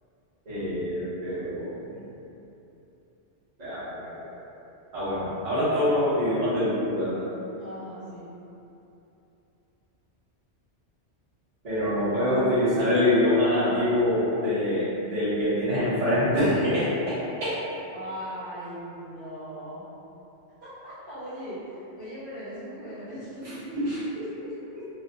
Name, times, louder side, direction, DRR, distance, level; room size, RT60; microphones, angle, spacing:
voice 1, 0.4-2.0 3.6-4.4 4.9-7.2 11.6-17.7 23.4-24.9, left 1 dB, 35° right, -13 dB, 1.2 m, -25 dB
voice 2, 7.6-8.3 17.9-19.8 20.6-23.4, equal, 50° right, -16 dB, 1.1 m, -39 dB
3.1 x 2.3 x 2.7 m, 2.9 s
omnidirectional pair, 1.2 m